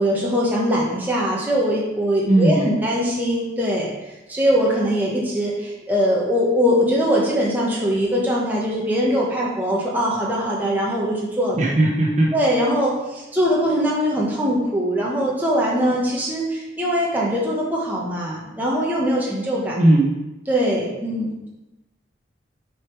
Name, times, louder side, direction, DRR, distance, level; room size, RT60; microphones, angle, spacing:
voice 1, 0.0-3.9 4.3-11.6 12.3-19.8 20.5-21.5, equal, 10° right, -4 dB, 1.2 m, -21 dB
voice 2, 2.3-2.6 11.6-12.3 19.8-20.1, right 1 dB, 40° right, -2 dB, 1.2 m, -17 dB
6.9 x 5.0 x 4.7 m, 0.99 s
head